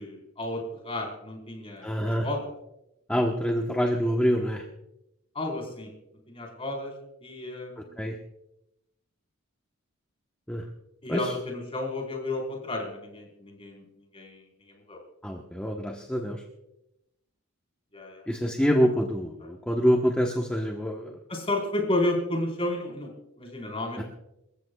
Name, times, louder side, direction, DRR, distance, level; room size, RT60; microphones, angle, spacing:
voice 1, 0.0-2.5 5.3-5.9 6.3-6.9 7.2-8.1 11.0-13.9 14.1-15.0 17.9-18.2 21.3-24.0, left 1 dB, 25° left, 0 dB, 4.3 m, -32 dB
voice 2, 1.8-2.3 3.1-4.6 8.0-8.1 10.5-10.6 11.1-11.3 15.2-16.4 18.3-21.2 24.0-24.1, equal, 5° left, 0 dB, 1.0 m, -26 dB
28.0 x 15.0 x 2.3 m, 0.88 s
head